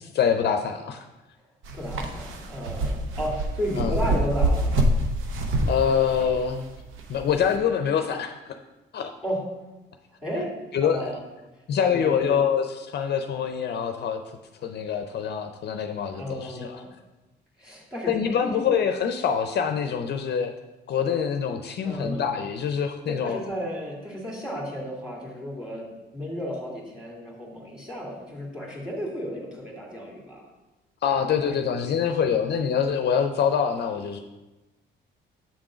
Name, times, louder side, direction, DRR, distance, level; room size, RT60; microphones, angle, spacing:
voice 1, 0.1-1.1 3.8-3.9 5.7-6.7 7.1-8.6 8.9-9.1 10.7-11.1 11.7-14.2 14.6-16.8 18.1-20.5 20.9-23.4 31.0-34.2, left 7 dB, 55° left, 6 dB, 0.5 m, -25 dB
sound 1, 1.6-7.6, right 1 dB, 90° right, 0.7 m, -26 dB
voice 2, 1.7-4.8 9.2-9.5 10.2-10.5 10.8-11.2 11.9-12.4 16.2-16.9 17.6-18.6 21.8-22.2 23.1-25.9 26.1-30.4 31.1-31.5 31.8-32.2, equal, 5° right, -2 dB, 2.1 m, -33 dB
7.3 x 3.7 x 4.9 m, 1.1 s
cardioid pair, 90°, 20 cm